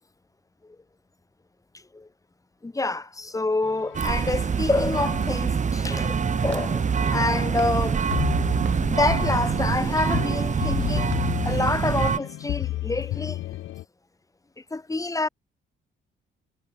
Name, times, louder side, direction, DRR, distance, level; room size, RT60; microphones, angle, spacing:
voice 1, 2.6-6.2 6.4-8.0 8.9-11.1 11.4-13.4 14.7-15.3, left 2 dB, 15° left, 2.0 m, -27 dB
sound 1, 3.6-13.8, left 15 dB, 75° left, 0.5 m, -33 dB
sound 2, 3.9-12.2, right 6 dB, 40° right, 1.3 m, -25 dB
Walk footsteps, 4.1-12.1, right 10 dB, 65° right, 6.4 m, -49 dB
cardioid pair, 90°, 20 cm